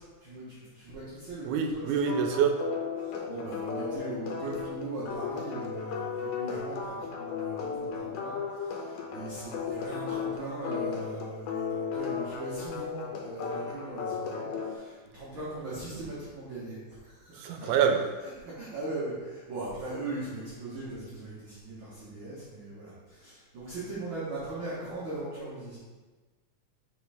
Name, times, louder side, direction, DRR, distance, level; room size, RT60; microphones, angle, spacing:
voice 1, 0.2-1.9 2.6-25.8, right 2 dB, 50° right, -9 dB, 1.7 m, -39 dB
voice 2, 1.4-2.7 17.4-18.0, right 7 dB, 85° right, 5 dB, 2.1 m, -26 dB
sound 1, 2.1-14.8, left 6 dB, 85° left, 2.2 m, -35 dB
6.0 x 5.1 x 3.4 m, 1.3 s
omnidirectional pair, 3.5 m